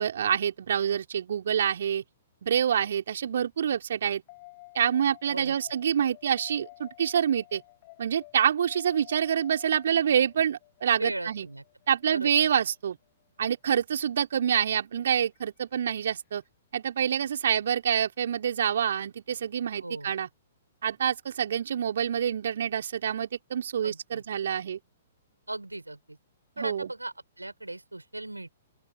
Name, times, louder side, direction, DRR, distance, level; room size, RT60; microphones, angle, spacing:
voice 1, 0.0-2.0 2.4-4.2 4.7-7.6 8.0-11.5 11.9-13.0 13.4-16.4 16.7-20.3 20.8-24.8 26.6-26.9, right 8 dB, 60° right, 4.3 m, -27 dB
sound 1, 4.3-12.7 15.4-15.5, left 23 dB, 40° left, 7.7 m, -52 dB
voice 2, 10.9-11.6 12.1-12.5 19.8-20.1 23.8-24.2 25.5-26.2 26.6-28.5, right 2 dB, 90° right, 6.0 m, -37 dB
open air
figure-of-eight pair, 115°, 0 cm